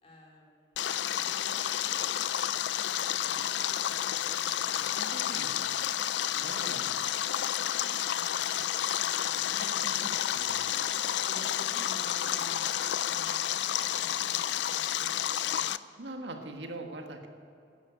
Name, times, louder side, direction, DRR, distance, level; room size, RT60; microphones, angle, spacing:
voice 1, 0.0-4.9 5.2-5.5 6.6-6.8 7.3-8.7 9.0-10.1 11.3-15.2 15.5-15.7, equal, 35° left, 0 dB, 2.8 m, -52 dB
Stream, 0.8-15.8, left 11 dB, 75° left, 0.4 m, -30 dB
voice 2, 4.9-5.5 6.3-6.9 9.4-10.5 16.0-17.3, right 2 dB, 80° right, 4 dB, 1.5 m, -42 dB
12.0 x 10.0 x 8.9 m, 2.7 s
head